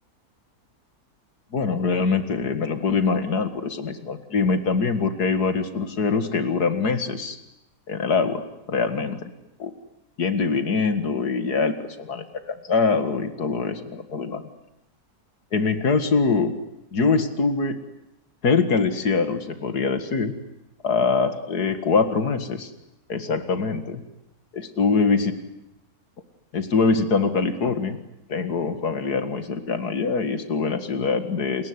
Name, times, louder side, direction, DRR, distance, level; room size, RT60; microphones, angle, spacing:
voice 1, 1.5-7.4 7.9-9.3 9.6-9.7 10.2-14.4 15.5-16.5 16.9-17.8 18.4-20.3 20.8-22.7 23.1-24.0 24.5-25.3 26.5-28.0 28.3-31.7, left 4 dB, 85° left, 10 dB, 2.5 m, -23 dB
29.5 x 21.0 x 9.8 m, 0.88 s
omnidirectional pair, 1.6 m